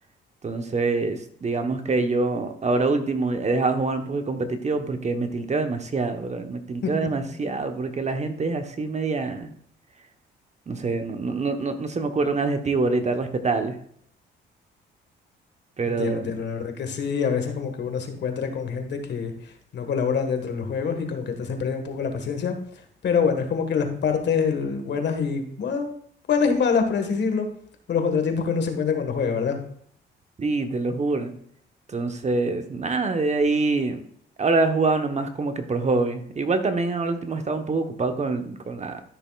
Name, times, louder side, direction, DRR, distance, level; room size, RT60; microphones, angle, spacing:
voice 1, 0.4-9.5 10.7-13.8 15.8-16.2 30.4-31.3 31.9-34.0 34.4-39.0, right 3 dB, 35° right, 7 dB, 1.1 m, -25 dB
voice 2, 15.8-19.3 19.7-22.5 23.0-25.9 26.3-27.5 27.9-29.6, left 6 dB, 60° left, 6 dB, 1.6 m, -25 dB
12.5 x 6.7 x 2.4 m, 0.64 s
cardioid pair, 90°, 20 cm